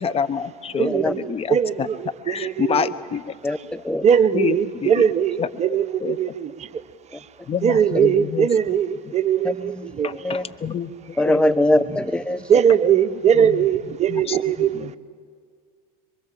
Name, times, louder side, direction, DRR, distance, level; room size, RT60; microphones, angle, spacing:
voice 1, 0.0-1.9 2.3-3.2 4.3-5.1 5.4-5.5 6.0-6.2 7.5-8.5 10.0-11.6 13.3-13.6 14.1-14.4 14.7-14.9, left 7 dB, 30° left, 13 dB, 1.1 m, -27 dB
voice 2, 0.8-2.9 4.0-6.8 7.1-7.3 7.6-10.2 11.9-12.0 12.4-15.0, right 8 dB, 35° right, 11 dB, 1.0 m, -21 dB
voice 3, 3.4-4.0 10.2-10.4 11.2-12.4, left 1 dB, 5° left, 13 dB, 0.6 m, -21 dB
26.5 x 23.5 x 7.7 m, 2.1 s
hypercardioid pair, 100°, 21 cm